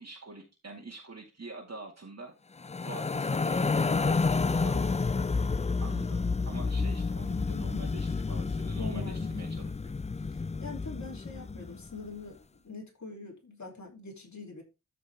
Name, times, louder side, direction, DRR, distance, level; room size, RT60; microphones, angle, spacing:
voice 1, 0.0-2.3 2.8-3.9 4.5-4.8 5.8-9.9, right 3 dB, 50° right, -2 dB, 2.2 m, -46 dB
sound 1, 2.6-11.9, left 4 dB, 20° left, 0.4 m, -30 dB
voice 2, 3.8-5.4 8.7-9.3 10.2-14.6, left 3 dB, 55° left, 0 dB, 3.0 m, -44 dB
13.0 x 5.1 x 3.6 m, 0.27 s
wide cardioid pair, 65°, 34 cm